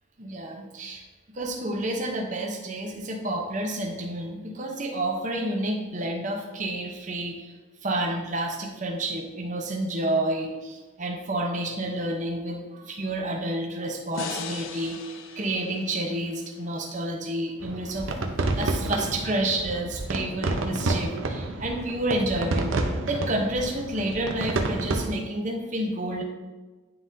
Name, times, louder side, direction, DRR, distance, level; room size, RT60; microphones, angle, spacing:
voice 1, 0.2-1.0 1.3-7.5 7.8-18.1 18.5-22.7 23.1-26.2, right 1 dB, 40° right, 1 dB, 0.8 m, -29 dB
sound 1, 14.1-17.4, left 6 dB, 75° left, 0.4 m, -40 dB
sound 2, 17.6-25.2, right 2 dB, 80° right, 0.7 m, -29 dB
9.5 x 3.7 x 2.7 m, 1.3 s
head